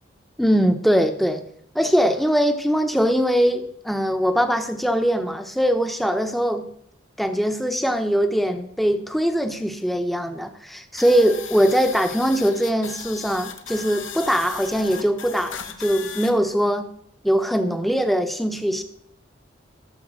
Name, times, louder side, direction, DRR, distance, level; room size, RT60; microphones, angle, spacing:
voice 1, 0.4-1.4 1.7-6.7 7.2-16.9 17.2-18.8, equal, ahead, 8 dB, 0.8 m, -21 dB
sound 1, 11.0-16.3, left 8 dB, 85° left, 1.2 m, -37 dB
13.0 x 7.1 x 6.2 m, 0.69 s
head